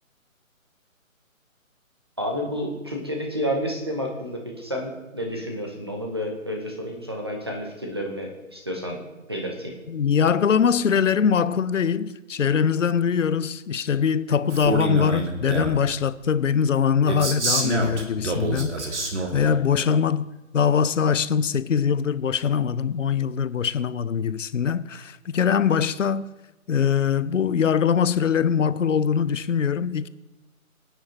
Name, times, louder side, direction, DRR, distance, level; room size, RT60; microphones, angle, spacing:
voice 1, 2.2-9.0 9.3-9.7, equal, 20° right, 0.8 m, -30 dB
voice 2, 9.9-19.0 19.3-20.3 20.5-26.3 26.7-30.1, left 7 dB, 65° left, 0.6 m, -22 dB
Male speech man speaking, 14.5-15.8 17.1-19.5, right 2 dB, 55° right, 2.0 m, -26 dB
24.0 x 9.2 x 2.8 m
hypercardioid pair, 170°, 42 cm